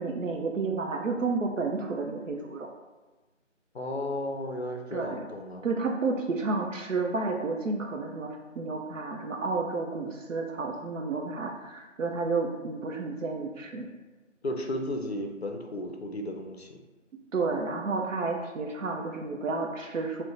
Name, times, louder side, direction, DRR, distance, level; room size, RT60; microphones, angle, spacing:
voice 1, 0.0-2.7 4.9-5.3 5.6-13.9 17.3-20.2, right 3 dB, 80° right, 2 dB, 0.5 m, -31 dB
voice 2, 3.7-5.7 14.4-16.8, left 1 dB, 60° left, 3 dB, 0.4 m, -34 dB
2.5 x 2.1 x 3.8 m, 1.2 s
figure-of-eight pair, 165°, 38 cm